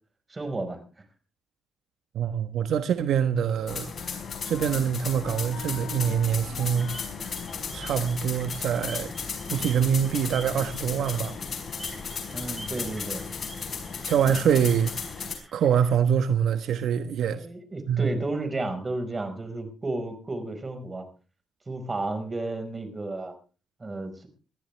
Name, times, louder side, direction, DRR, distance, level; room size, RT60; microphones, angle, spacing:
voice 1, 0.3-1.0 12.3-13.2 17.3-21.0 21.7-23.3 23.8-24.3, right 2 dB, 25° right, 5.0 m, -32 dB
voice 2, 2.1-3.9 4.4-6.9 7.7-9.1 9.5-11.4 14.0-14.9 15.5-17.5 17.9-18.1, right 8 dB, 70° right, 1.2 m, -24 dB
Wind instrument woodwind instrument, 3.4-8.8, left 6 dB, 75° left, 5.3 m, -45 dB
sound 1, 3.7-15.3, left 5 dB, 50° left, 5.0 m, -35 dB
sound 2, 6.8-16.0, right 1 dB, 10° right, 4.8 m, -47 dB
21.0 x 14.5 x 3.4 m
cardioid pair, 90°, 0 cm